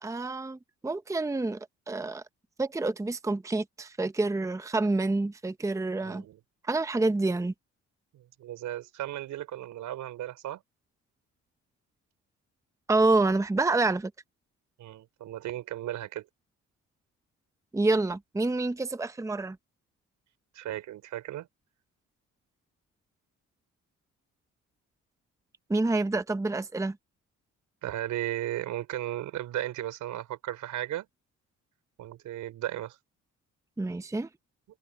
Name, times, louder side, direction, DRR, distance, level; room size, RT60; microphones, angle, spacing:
voice 1, 0.0-2.2 2.6-6.2 6.6-7.5 12.9-14.1 17.7-19.6 25.7-27.0 33.8-34.3, right 2 dB, 10° right, 0.8 m, -28 dB
voice 2, 6.0-6.4 8.1-10.6 14.8-16.2 20.5-21.5 27.8-31.1 32.0-33.0, right 13 dB, 85° right, 4.9 m, -35 dB
open air
cardioid pair, 90°, 30 cm